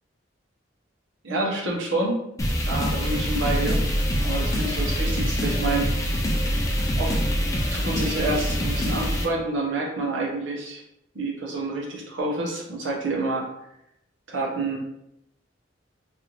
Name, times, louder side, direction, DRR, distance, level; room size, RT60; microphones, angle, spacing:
voice 1, 1.2-2.2 2.7-3.8 4.2-6.2 7.0-7.2 7.7-10.8 11.1-13.5 14.3-14.8, right 2 dB, 90° right, -2 dB, 0.9 m, -28 dB
sound 1, 2.4-9.3, equal, 20° left, 0.5 m, -24 dB
3.3 x 2.5 x 3.0 m, 0.81 s
head